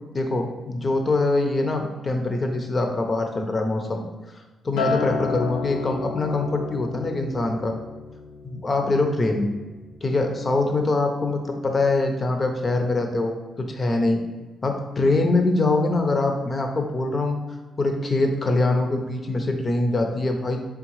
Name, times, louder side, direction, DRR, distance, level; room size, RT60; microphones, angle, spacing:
voice 1, 0.1-4.0 4.6-7.8 8.4-9.5 10.0-14.2 14.6-17.4 17.8-20.7, left 2 dB, 35° left, 3 dB, 0.6 m, -23 dB
Acoustic guitar, 4.8-9.2 9.6-10.0, left 4 dB, 90° left, 0.5 m, -31 dB
3.6 x 3.5 x 3.1 m, 1.2 s
cardioid pair, 75°, 0 cm